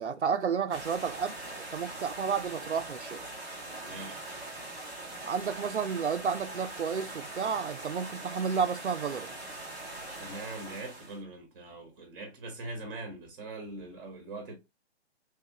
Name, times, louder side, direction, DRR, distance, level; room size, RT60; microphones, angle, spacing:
voice 1, 0.0-3.2 5.3-9.3, right 6 dB, 90° right, 0.5 m, -31 dB
sound 1, 0.7-11.2, right 2 dB, ahead, 0.6 m, -42 dB
voice 2, 3.8-4.2 10.2-14.6, right 2 dB, 20° right, 0.9 m, -42 dB
3.1 x 2.5 x 2.9 m
figure-of-eight pair, 140°, 33 cm